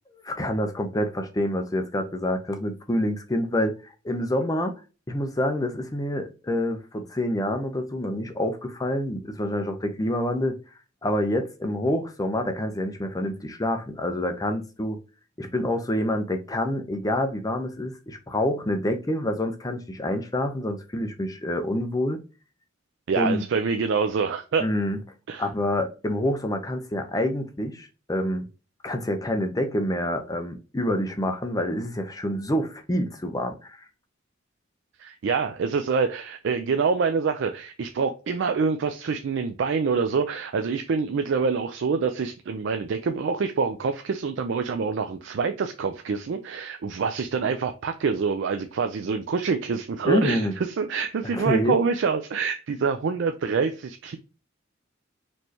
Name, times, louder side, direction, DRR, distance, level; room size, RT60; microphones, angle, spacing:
voice 1, 0.2-3.7 4.0-4.7 5.1-10.6 11.0-15.0 15.4-22.2 23.2-23.4 24.6-25.0 25.4-28.4 28.8-33.8 50.0-50.5 51.3-51.8, left 1 dB, 20° left, 0.6 m, -27 dB
voice 2, 23.1-24.6 25.3-25.4 35.0-54.2, right 5 dB, 65° right, 0.4 m, -26 dB
4.3 x 3.2 x 2.8 m
head